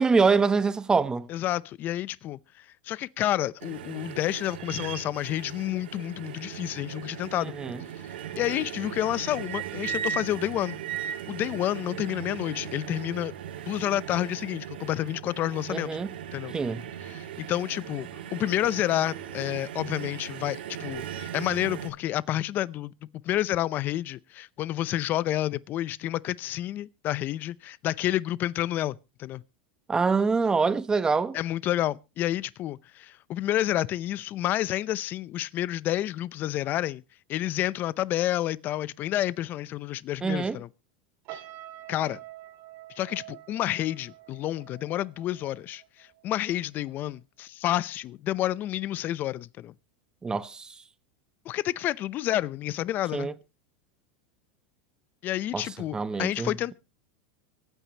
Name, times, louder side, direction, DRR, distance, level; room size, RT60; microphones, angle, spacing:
voice 1, 0.0-1.3 7.6-7.8 15.7-16.1 16.5-16.8 29.9-31.4 40.2-40.6 50.2-50.7 53.1-53.3 55.5-55.7 55.9-56.5, right 4 dB, 15° right, 0.9 m, -25 dB
voice 2, 1.3-7.5 8.4-13.3 13.7-16.0 16.3-16.5 17.0-22.9 23.2-29.4 31.3-37.0 37.3-40.7 41.3-41.4 41.9-42.2 43.0-49.7 51.4-53.3 55.2-56.7, left 13 dB, 40° left, 0.6 m, -29 dB
sound 1, 3.6-21.9, right 9 dB, 90° right, 2.7 m, -38 dB
sound 2, 41.3-46.6 46.9-47.2, right 14 dB, 50° right, 1.9 m, -47 dB
24.5 x 9.1 x 2.9 m
supercardioid pair, 130°, 5 cm